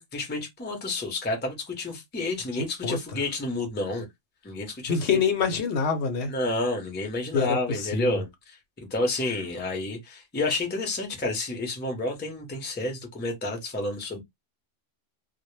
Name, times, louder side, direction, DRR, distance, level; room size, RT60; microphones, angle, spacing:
voice 1, 0.0-4.1 4.4-5.2 6.3-14.2, left 2 dB, 15° left, 0.4 m, -30 dB
voice 2, 2.5-3.2 4.9-6.3 7.3-8.2, left 5 dB, 70° left, 0.8 m, -26 dB
2.1 x 2.0 x 3.0 m
omnidirectional pair, 1.3 m